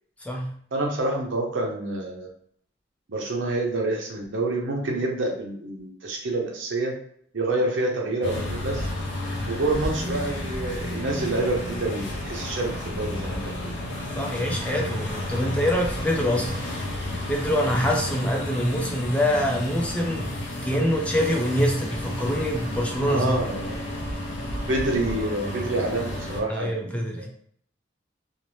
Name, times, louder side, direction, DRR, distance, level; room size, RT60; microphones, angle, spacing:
voice 1, 0.2-0.5 14.1-16.6 17.0-20.3 20.6-23.3 26.5-27.3, equal, 5° left, 0 dB, 0.4 m, -25 dB
voice 2, 0.7-2.3 3.1-7.0 7.3-8.9 9.5-13.8 23.0-23.8 24.7-27.3, right 2 dB, 90° right, 0 dB, 0.7 m, -27 dB
sound 1, 8.2-26.4, left 1 dB, 80° left, 0.5 m, -32 dB
2.6 x 2.0 x 3.1 m, 0.63 s
head